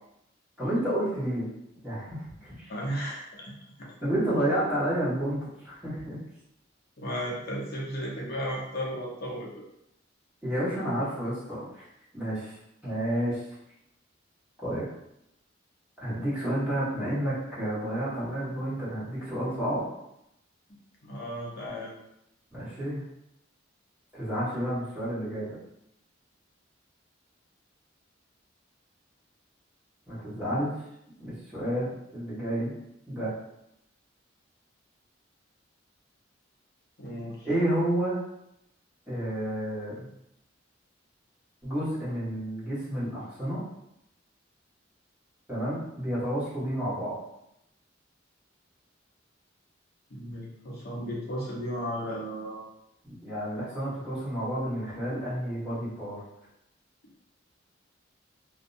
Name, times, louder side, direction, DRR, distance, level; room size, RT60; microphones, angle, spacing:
voice 1, 0.6-1.5 1.8-2.7 4.0-6.2 10.4-11.8 12.1-12.5 12.8-13.4 14.6-14.9 16.0-19.8 22.5-23.0 24.1-25.6 30.1-30.8 31.2-32.7 33.1-33.3 37.4-38.2 39.1-40.1 41.6-43.6 45.5-47.1 53.2-56.2, right 1 dB, 5° right, -12 dB, 1.2 m, -30 dB
voice 2, 2.7-3.5 7.0-9.6 21.0-21.9 37.0-37.5 50.1-52.6, equal, 55° left, -4 dB, 0.6 m, -34 dB
2.6 x 2.1 x 2.5 m, 0.81 s
head